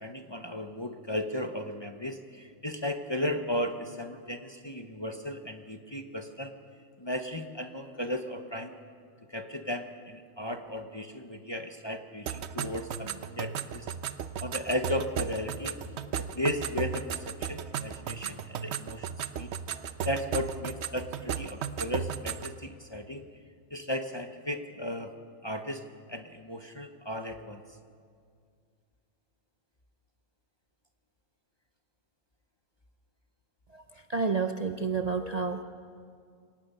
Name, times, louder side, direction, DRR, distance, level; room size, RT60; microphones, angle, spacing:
voice 1, 0.0-6.5 7.0-8.7 9.3-13.9 14.4-15.9 16.2-19.1 19.3-19.5 20.0-23.3 23.7-25.1 25.4-25.8 26.1-27.6, left 1 dB, 25° left, 6 dB, 0.8 m, -35 dB
sound 1, 12.3-22.6, right 8 dB, 60° right, 0.9 m, -36 dB
voice 2, 33.7-35.6, right 5 dB, 40° right, 6 dB, 0.6 m, -30 dB
26.5 x 18.0 x 5.6 m, 2.2 s
omnidirectional pair, 1.4 m